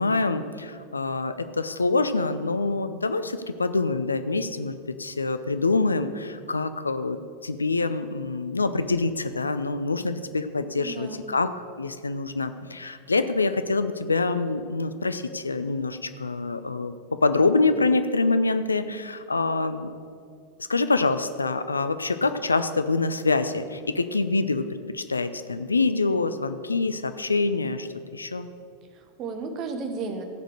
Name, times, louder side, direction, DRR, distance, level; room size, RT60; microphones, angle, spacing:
voice 1, 0.0-7.2 7.4-16.9 17.2-19.9 20.6-24.6 24.9-28.5, left 3 dB, 80° left, 11 dB, 0.5 m, -25 dB
voice 2, 10.8-11.3 28.9-30.2, right 4 dB, 35° right, 6 dB, 1.3 m, -34 dB
15.0 x 5.1 x 6.5 m, 2.3 s
figure-of-eight pair, 90°, 0 cm